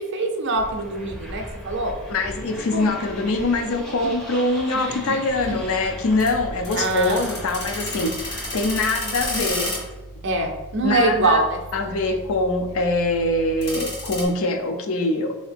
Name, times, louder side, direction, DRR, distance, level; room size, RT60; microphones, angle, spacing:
voice 1, 0.1-1.9 2.7-2.9 4.0-4.1 5.1-5.2 5.5-5.6 6.8-7.2 10.2-11.6 12.0-12.2, right 2 dB, 50° right, 4 dB, 0.5 m, -23 dB
sound 1, 0.5-9.9, equal, ahead, 0.5 m, -38 dB
voice 2, 2.1-9.8 10.8-11.4 11.7-15.4, left 2 dB, 65° left, 5 dB, 0.4 m, -23 dB
sound 2, 5.4-14.3, left 1 dB, 50° left, 1.2 m, -34 dB
3.7 x 2.7 x 3.4 m, 1.1 s
head